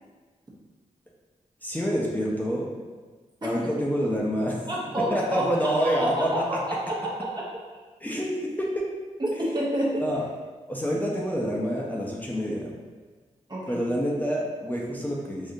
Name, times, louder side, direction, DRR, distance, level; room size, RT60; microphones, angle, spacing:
voice 1, 1.6-2.7 3.4-4.6 5.1-6.6 8.0-8.9 10.0-10.3 10.7-12.7 13.7-15.5, equal, 10° left, -3 dB, 0.6 m, -27 dB
voice 2, 4.7-6.4 6.7-7.4 9.2-10.0 13.5-13.8, right 1 dB, 35° right, -5 dB, 0.8 m, -29 dB
3.5 x 2.7 x 2.6 m, 1.4 s
cardioid pair, 50°, 13 cm